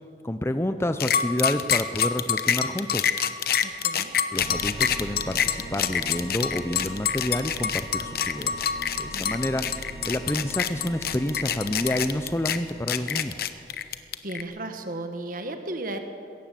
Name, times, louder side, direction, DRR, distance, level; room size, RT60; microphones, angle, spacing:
voice 1, 0.2-3.1 4.3-8.7 9.0-13.5, left 1 dB, 15° left, 9 dB, 0.6 m, -29 dB
sound 1, 1.0-14.4, left 8 dB, 60° left, 1.0 m, -26 dB
voice 2, 3.6-4.1 9.1-9.6 13.9-14.0 14.2-16.0, right 2 dB, 50° right, 6 dB, 1.5 m, -35 dB
sound 2, 4.4-13.8, right 1 dB, 40° left, 4.2 m, -41 dB
21.5 x 17.0 x 7.6 m, 2.5 s
head